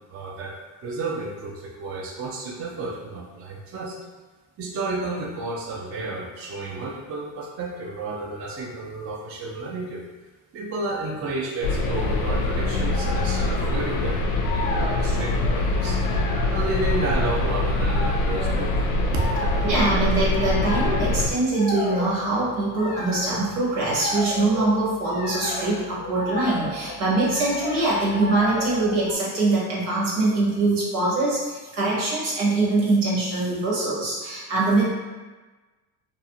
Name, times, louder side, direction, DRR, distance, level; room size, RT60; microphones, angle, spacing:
voice 1, 0.1-0.5 0.8-4.0 4.6-10.0 10.5-14.2 14.5-16.0 16.5-18.9 19.4-19.8, right 3 dB, 35° right, -1 dB, 0.5 m, -32 dB
sound 1, 11.6-21.3, left 2 dB, 85° left, 0.5 m, -24 dB
sound 2, 12.0-29.1, left 1 dB, 25° left, 0.4 m, -34 dB
voice 2, 19.6-34.8, right 2 dB, 85° right, -5 dB, 1.1 m, -23 dB
2.5 x 2.3 x 2.7 m, 1.3 s
supercardioid pair, 90°, 42 cm